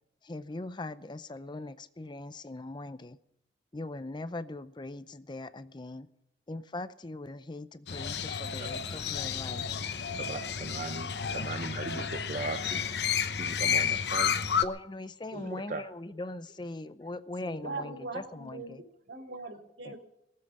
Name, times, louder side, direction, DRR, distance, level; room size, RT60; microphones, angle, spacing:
voice 1, 0.2-3.2 3.7-6.1 6.5-9.7 14.6-18.8 19.8-19.9, left 2 dB, 25° left, 14 dB, 0.5 m, -40 dB
Crow, 7.9-14.6, left 7 dB, 70° left, 0.9 m, -31 dB
voice 2, 10.0-12.9 13.4-14.4 15.3-15.9, right 3 dB, 45° right, 9 dB, 0.6 m, -38 dB
voice 3, 17.4-20.0, right 3 dB, 85° right, 2 dB, 3.0 m, -41 dB
19.0 x 7.6 x 9.8 m, 0.81 s
head